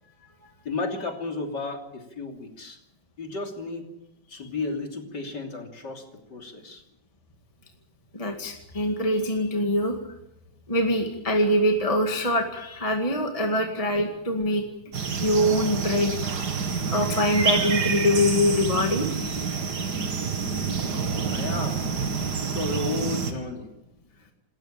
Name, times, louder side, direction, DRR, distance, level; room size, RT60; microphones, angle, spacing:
voice 1, 0.7-2.8 3.2-3.9 4.3-6.8 21.3-22.0 22.2-23.7 24.1-24.3, left 3 dB, 60° left, 3 dB, 3.8 m, -33 dB
voice 2, 8.1-10.0 10.7-14.6 15.2-16.2 16.9-19.1, left 1 dB, 20° left, 3 dB, 2.1 m, -24 dB
sound 1, 14.9-23.3, right 5 dB, 60° right, 2.5 m, -28 dB
27.5 x 14.0 x 8.9 m, 0.88 s
omnidirectional pair, 2.1 m